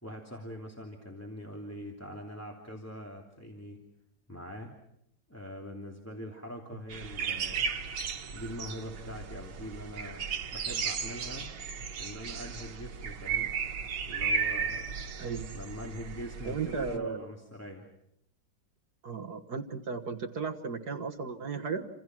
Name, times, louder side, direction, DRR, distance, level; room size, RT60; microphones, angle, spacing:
voice 1, 0.0-3.8 4.3-4.7 5.3-7.7 8.3-10.2 10.5-11.5 12.0-13.5 14.1-15.0 15.5-17.9, equal, 5° left, 0 dB, 2.8 m, -43 dB
sound 1, 6.9-17.0, right 6 dB, 90° right, 2.3 m, -35 dB
voice 2, 15.2-15.6 16.4-17.2 19.0-21.9, right 5 dB, 55° right, 4 dB, 1.9 m, -35 dB
29.0 x 27.5 x 6.1 m, 0.77 s
omnidirectional pair, 2.1 m